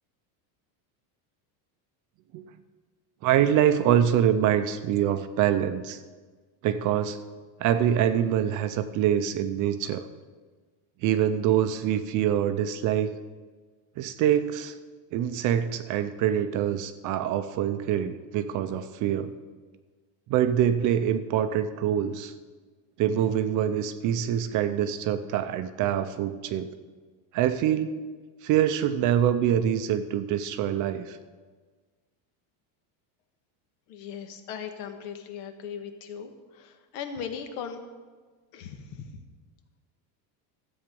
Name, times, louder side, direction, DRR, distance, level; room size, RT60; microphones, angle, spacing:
voice 1, 3.2-6.0 6.6-7.2 7.6-10.1 11.0-13.1 14.0-14.8 15.1-19.4 20.3-22.3 23.0-26.7 27.3-28.0 28.4-31.2, right 10 dB, 40° right, 11 dB, 0.5 m, -25 dB
voice 2, 33.9-36.3 36.9-37.8 38.5-39.0, left 7 dB, 75° left, 6 dB, 1.5 m, -37 dB
13.5 x 8.1 x 5.3 m, 1.4 s
cardioid pair, 165°, 50 cm